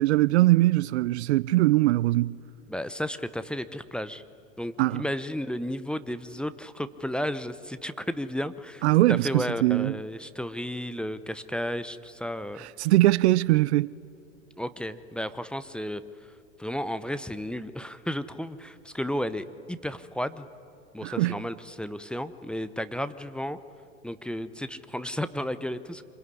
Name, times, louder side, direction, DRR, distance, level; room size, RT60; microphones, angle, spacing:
voice 1, 0.0-2.4 4.8-5.0 8.8-9.9 12.6-13.9 21.0-21.4, right 17 dB, 60° right, 0.6 m, -22 dB
voice 2, 2.7-4.2 4.6-8.8 9.1-12.6 14.6-16.0 16.6-20.5 20.9-23.6 24.0-26.0, equal, ahead, 0.8 m, -33 dB
25.5 x 22.0 x 9.8 m
hypercardioid pair, 100°, 38 cm